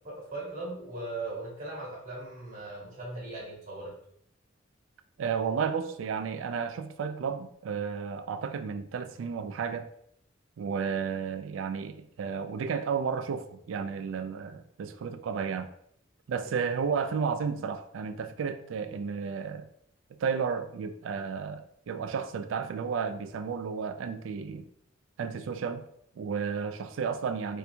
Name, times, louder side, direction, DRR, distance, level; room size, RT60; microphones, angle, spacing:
voice 1, 0.0-3.9 16.4-16.5, right 2 dB, 40° right, 1.4 m, -39 dB
voice 2, 5.2-9.9 10.6-15.7 16.3-19.7 20.2-24.7 25.2-25.8 26.2-27.6, right 6 dB, 80° right, 0.3 m, -32 dB
4.2 x 2.6 x 2.3 m
head